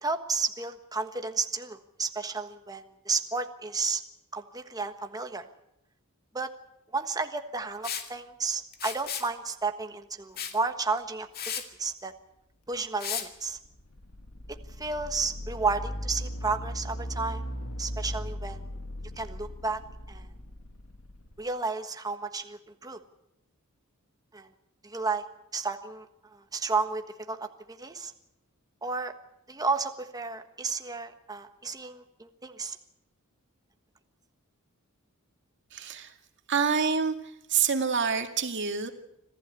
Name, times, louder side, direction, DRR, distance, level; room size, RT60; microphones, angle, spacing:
voice 1, 0.0-4.0 4.3-5.5 6.3-6.5 6.9-11.3 11.8-12.1 12.7-13.6 14.8-17.4 17.8-18.6 19.2-19.8 20.1-20.3 21.4-23.0 24.3-24.5 24.8-25.2 25.5-28.1 28.8-29.1 29.5-32.8, right 4 dB, 20° right, 6 dB, 1.3 m, -32 dB
Liquid, 7.8-8.1 8.7-9.3 10.4-10.6 11.0-11.1 11.3-11.6 13.0-13.3, left 8 dB, 45° left, 2.3 m, -34 dB
sound 1, 13.6-21.4, equal, 85° left, 2.2 m, -38 dB
voice 2, 35.7-36.1 36.5-37.2 37.5-38.9, right 6 dB, 55° right, 5 dB, 2.2 m, -26 dB
26.0 x 15.5 x 8.2 m, 0.84 s
head